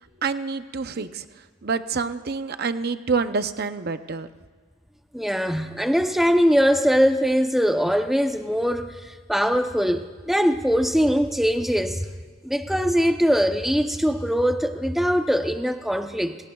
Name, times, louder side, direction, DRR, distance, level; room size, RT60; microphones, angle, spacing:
voice 1, 0.2-1.3 1.6-4.3, right 4 dB, 50° right, 10 dB, 0.6 m, -27 dB
voice 2, 5.1-12.1 12.4-16.4, equal, ahead, 6 dB, 0.7 m, -22 dB
29.5 x 18.5 x 2.3 m, 1.5 s
head